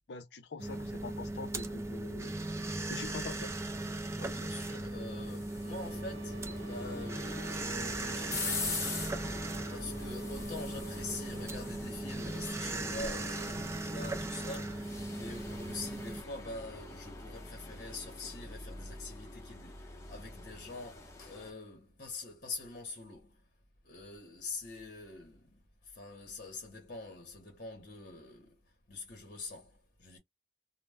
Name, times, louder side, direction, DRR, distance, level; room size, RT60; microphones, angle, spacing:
voice 1, 0.0-2.4 2.9-3.5, left 4 dB, 75° left, 0.6 m, -44 dB
sound 1, 0.6-16.2, right 2 dB, 15° right, 0.4 m, -38 dB
voice 2, 3.9-23.5 23.8-30.2, left 3 dB, 50° left, 0.8 m, -45 dB
sound 2, 4.9-21.5, left 3 dB, 15° left, 0.7 m, -44 dB
sound 3, 5.5-11.5, equal, 80° right, 0.6 m, -53 dB
2.1 x 2.0 x 3.3 m
head